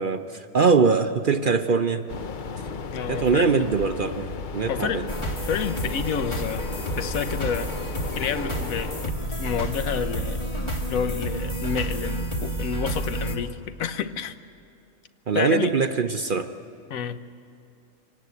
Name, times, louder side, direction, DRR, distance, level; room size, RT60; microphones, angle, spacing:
voice 1, 0.0-2.1 3.1-5.0 15.3-16.5, right 5 dB, 50° right, 0.7 m, -22 dB
sound 1, 2.1-9.1, left 4 dB, 45° left, 0.7 m, -35 dB
voice 2, 2.9-3.6 4.7-5.1 5.4-6.7 6.9-7.7 8.1-10.4 10.9-14.4 15.3-15.7 16.9-17.2, left 7 dB, 80° left, 1.3 m, -29 dB
sound 2, 5.1-13.4, right 1 dB, 20° left, 2.2 m, -30 dB
25.5 x 18.5 x 8.3 m
omnidirectional pair, 1.4 m